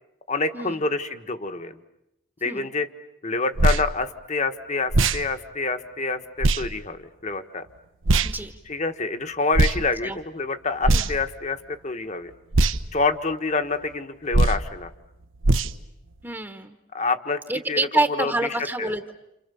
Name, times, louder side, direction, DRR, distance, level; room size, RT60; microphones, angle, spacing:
voice 1, 0.3-1.8 2.4-2.9 3.2-7.7 8.7-12.3 12.9-14.9 16.9-17.4 17.7-18.3 18.8-18.9, left 3 dB, 35° left, 8 dB, 1.4 m, -27 dB
sound 1, 3.6-3.8 4.9-5.2 6.4-6.6 8.1-8.3 9.5-9.8 10.8-11.3 12.5-12.8 14.3-14.6 15.4-15.7, right 2 dB, 75° right, 1.0 m, -19 dB
voice 2, 16.2-16.8 17.5-19.2, right 2 dB, 10° right, 8 dB, 1.1 m, -27 dB
29.5 x 28.5 x 7.0 m, 0.87 s
head